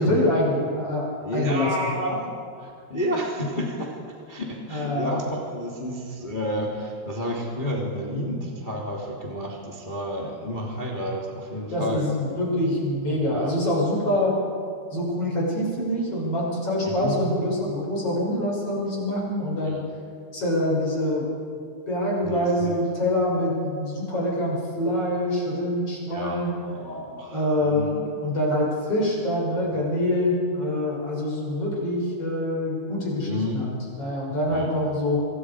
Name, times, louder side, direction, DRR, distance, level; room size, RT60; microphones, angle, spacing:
voice 1, 0.0-2.0 4.7-5.2 11.7-14.4 14.9-19.8 20.3-21.4 21.9-26.6 27.3-27.9 28.2-35.2, left 1 dB, 30° left, -4 dB, 7.1 m, -25 dB
voice 2, 1.2-2.3 2.6-4.0 4.3-12.1 13.1-13.5 16.8-17.1 19.7-19.8 22.2-22.8 26.1-28.1 33.2-33.6 34.5-34.7, equal, 15° left, -3 dB, 2.0 m, -30 dB
26.5 x 25.5 x 5.0 m, 2.3 s
omnidirectional pair, 5.1 m